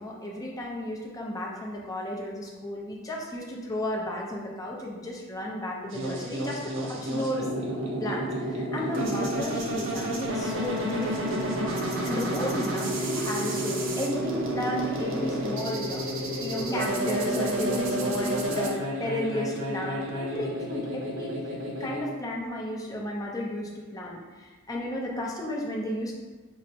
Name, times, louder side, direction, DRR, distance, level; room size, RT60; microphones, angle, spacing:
voice 1, 0.0-16.1 16.4-26.1, left 1 dB, 15° left, -3 dB, 0.5 m, -33 dB
sound 1, 5.9-22.0, right 1 dB, 60° right, 0.5 m, -30 dB
5.4 x 2.0 x 2.7 m, 1.4 s
head